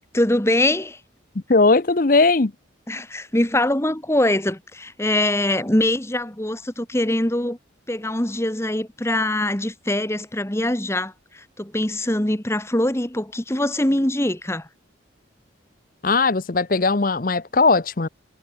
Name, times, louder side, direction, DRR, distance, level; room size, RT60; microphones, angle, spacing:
voice 1, 0.1-1.0 2.9-7.6 7.9-14.7, left 1 dB, 15° left, 1.3 m, -23 dB
voice 2, 1.3-2.5 16.0-18.1, left 3 dB, 45° left, 0.8 m, -18 dB
head